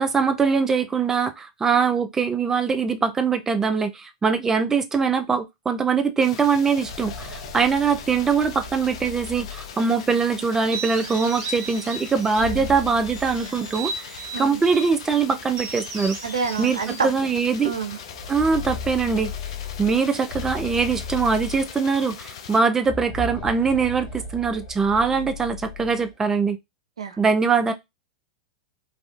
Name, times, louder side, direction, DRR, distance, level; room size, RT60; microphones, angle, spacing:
voice 1, 0.0-16.2 16.6-17.7 18.3-19.3 19.8-26.6 27.2-27.7, right 5 dB, 15° right, 0.4 m, -22 dB
sound 1, 6.2-22.6, left 7 dB, 70° left, 0.5 m, -41 dB
sound 2, 6.5-10.3 12.1-14.3 14.6-14.7 15.6-15.7 16.1-16.3 17.9-22.1 22.7-26.1, left 4 dB, 55° left, 1.1 m, -36 dB
sound 3, 10.5-12.6 13.0-14.9 15.5-18.0, right 3 dB, 50° right, 1.3 m, -36 dB
voice 2, 16.2-17.1 17.6-18.0 27.0-27.2, right 5 dB, 85° right, 0.5 m, -28 dB
3.3 x 2.4 x 2.4 m
hypercardioid pair, 105°, 3 cm